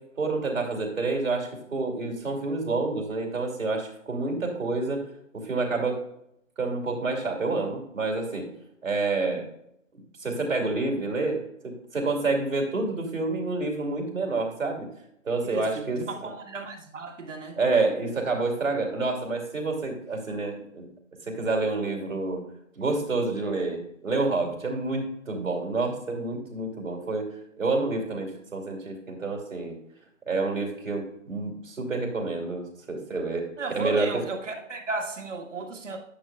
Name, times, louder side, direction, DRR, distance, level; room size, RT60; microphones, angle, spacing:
voice 1, 0.2-5.1 5.3-6.0 6.6-8.5 8.8-9.5 10.2-14.9 15.2-16.0 17.6-20.9 21.2-22.4 22.8-27.3 27.6-29.8 30.3-34.2, right 3 dB, 80° right, 1 dB, 2.8 m, -28 dB
voice 2, 15.4-17.6 33.6-36.0, right 3 dB, 65° right, 3 dB, 1.7 m, -34 dB
10.5 x 6.8 x 2.3 m, 0.75 s
figure-of-eight pair, 145°, 39 cm